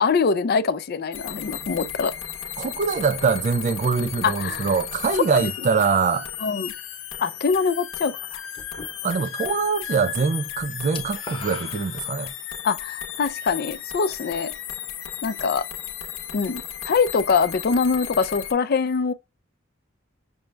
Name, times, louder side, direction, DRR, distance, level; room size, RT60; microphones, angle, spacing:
voice 1, 0.0-2.1 4.2-4.7 6.4-6.7 7.2-8.4 12.6-14.5 15.2-15.6 16.3-19.1, left 5 dB, 50° left, 0.4 m, -23 dB
sound 1, 1.1-18.5, left 10 dB, 75° left, 0.7 m, -35 dB
voice 2, 2.6-6.3 9.0-12.3, right 5 dB, 35° right, 0.3 m, -23 dB
sound 2, 8.5-9.5 9.8-10.2 10.4-12.5, left 4 dB, 25° left, 0.9 m, -39 dB
6.1 x 2.3 x 3.2 m
head